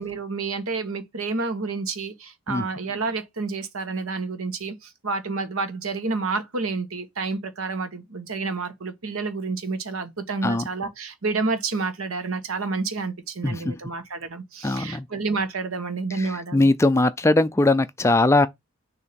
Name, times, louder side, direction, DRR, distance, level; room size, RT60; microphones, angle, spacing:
voice 1, 0.0-16.7, right 3 dB, 85° right, 1.1 m, -29 dB
voice 2, 13.4-13.7 14.6-15.1 16.2-18.5, left 2 dB, 15° left, 0.3 m, -20 dB
6.7 x 2.8 x 5.1 m
head